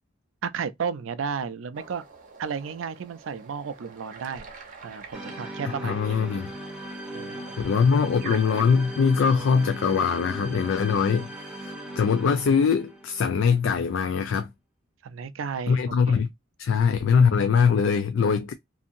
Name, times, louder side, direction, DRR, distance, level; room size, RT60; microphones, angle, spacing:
voice 1, 0.4-2.0 2.4-4.5 4.8-6.2 7.1-7.6 15.0-16.2, right 6 dB, 75° right, 0.4 m, -33 dB
sound 1, 1.7-9.9, right 4 dB, 40° right, 0.7 m, -46 dB
sound 2, 5.1-13.6, right 1 dB, 5° right, 0.6 m, -38 dB
voice 2, 5.8-6.5 7.6-14.5 15.7-16.3 16.6-18.5, left 6 dB, 65° left, 0.3 m, -22 dB
2.7 x 2.6 x 2.5 m
head